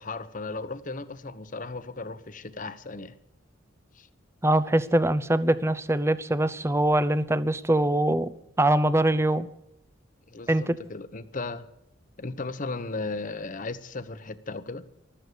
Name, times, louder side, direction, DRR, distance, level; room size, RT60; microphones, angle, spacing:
voice 1, 0.0-3.1 3.9-4.1 10.3-11.7 12.2-14.9, left 3 dB, 40° left, 1.0 m, -36 dB
voice 2, 4.4-8.3 8.6-9.5 10.5-10.8, right 1 dB, 15° right, 0.6 m, -23 dB
14.5 x 13.0 x 6.8 m
head